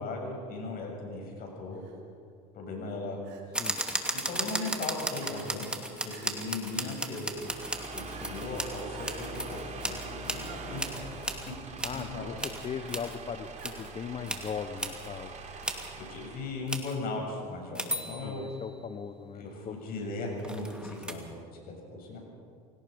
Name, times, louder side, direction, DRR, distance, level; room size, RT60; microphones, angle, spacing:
voice 1, 0.0-1.8 2.5-3.2 4.1-7.3 7.9-10.8 11.9-12.3 15.9-18.5 19.4-21.2 21.7-22.2, left 3 dB, 55° left, 1 dB, 7.3 m, -37 dB
Crying sobbing, 1.7-2.0 3.2-3.8 4.2-4.3 4.5-4.8 5.2-5.6 6.1-6.4 6.7-7.2 8.1-8.5 8.9-9.4 10.5-11.3 12.8-13.2 13.5-14.1, right 5 dB, 70° right, 3.7 m, -51 dB
sound 1, 3.5-10.5 10.8-12.0 12.4-13.2 13.6-13.9 14.3-14.5 14.8-15.1 15.6-15.9 16.7-17.0 17.7-18.7 20.4-21.1, right 1 dB, 5° right, 2.6 m, -35 dB
sound 2, 7.2-16.6, right 3 dB, 40° right, 3.4 m, -43 dB
voice 2, 11.8-15.4 18.2-19.8, left 7 dB, 35° left, 8 dB, 1.2 m, -39 dB
27.0 x 18.5 x 5.4 m, 2.2 s
hypercardioid pair, 80°, 18 cm